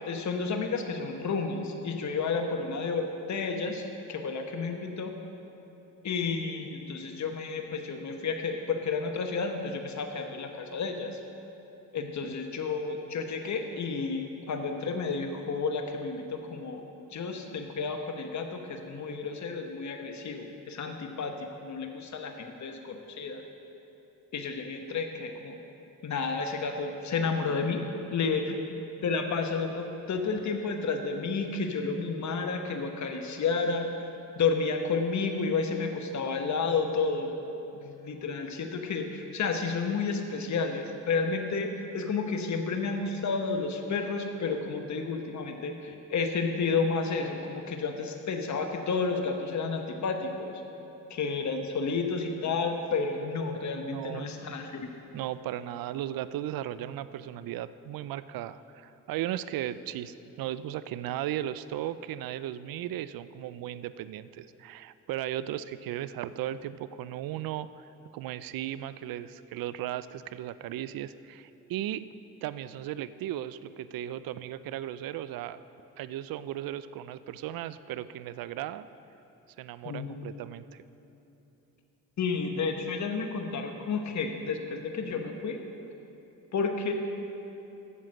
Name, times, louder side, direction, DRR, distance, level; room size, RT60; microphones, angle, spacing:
voice 1, 0.0-5.1 6.0-11.2 11.9-16.8 17.1-23.4 24.3-25.5 26.0-27.8 28.1-28.6 29.0-33.9 34.4-37.3 37.8-41.7 41.9-50.6 51.1-54.9 79.8-80.2 82.2-85.6 86.5-86.9, left 4 dB, 50° left, 4 dB, 1.1 m, -31 dB
voice 2, 53.9-54.3 55.1-72.0 72.4-75.6 76.0-78.9 79.6-80.8, right 12 dB, 75° right, 15 dB, 0.5 m, -36 dB
9.8 x 7.5 x 6.4 m, 3.0 s
supercardioid pair, 60°, 36 cm